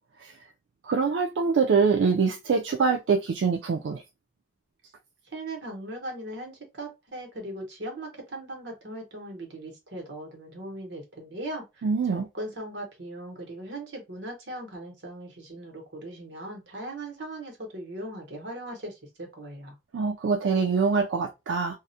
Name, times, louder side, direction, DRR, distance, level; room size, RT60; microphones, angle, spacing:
voice 1, 0.8-4.0 11.8-12.3 19.9-21.8, right 5 dB, 85° right, 0.4 m, -24 dB
voice 2, 5.3-11.8 12.1-19.7, right 1 dB, 65° right, 1.0 m, -39 dB
2.3 x 2.1 x 2.6 m
head